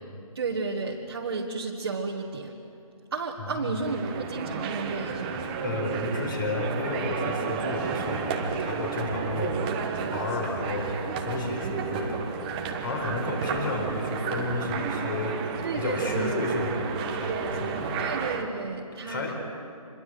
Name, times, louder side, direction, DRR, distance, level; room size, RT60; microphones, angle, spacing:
voice 1, 0.4-2.6 3.1-5.5 15.6-16.5 18.0-19.3, right 4 dB, 40° right, -1 dB, 1.8 m, -32 dB
voice 2, 3.4-3.9 5.6-9.6 10.1-10.9 11.2-12.2 12.8-15.4 15.7-18.0 19.0-19.3, left 2 dB, 35° left, 3 dB, 4.5 m, -31 dB
sound 1, 3.8-18.4, right 6 dB, 15° right, 1.2 m, -32 dB
26.5 x 22.5 x 7.8 m, 2.5 s
figure-of-eight pair, 160°, 19 cm